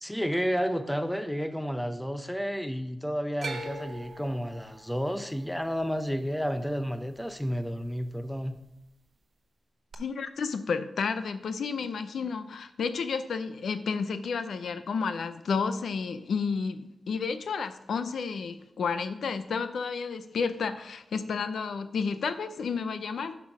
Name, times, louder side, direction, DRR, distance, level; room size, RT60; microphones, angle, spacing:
voice 1, 0.0-8.6, equal, ahead, 9 dB, 0.6 m, -31 dB
sound 1, 3.4-7.6 7.9-8.6 9.9-10.0, right 2 dB, 55° right, 0.9 m, -42 dB
voice 2, 10.0-23.4, left 5 dB, 90° left, 11 dB, 0.6 m, -31 dB
10.5 x 6.1 x 4.9 m, 0.85 s
wide cardioid pair, 140°, 0 cm